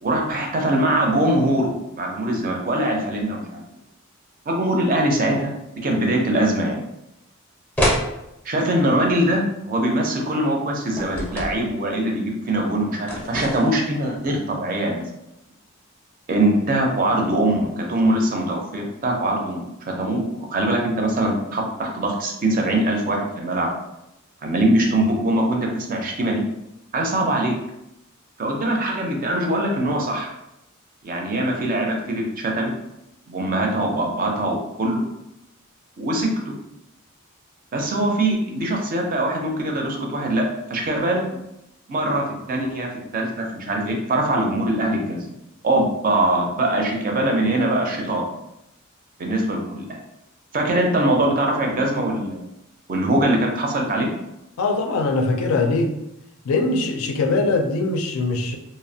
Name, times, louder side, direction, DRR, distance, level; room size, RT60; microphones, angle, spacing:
voice 1, 0.0-3.6 4.5-5.5 5.8-6.8 8.4-15.1 16.3-23.7 24.4-26.4 26.9-27.5 28.4-30.3 31.0-32.7 33.3-35.0 36.0-36.5 37.7-41.4 41.9-45.2 45.6-48.3 49.2-50.0 50.5-52.4 52.9-54.1, right 1 dB, 40° right, 1 dB, 0.5 m, -22 dB
sound 1, 7.8-8.1 11.0-11.6 13.1-13.8, equal, 10° left, 0.5 m, -24 dB
voice 2, 54.6-55.9 56.5-58.6, left 3 dB, 75° left, 3 dB, 0.4 m, -21 dB
2.6 x 2.0 x 2.6 m, 0.86 s
head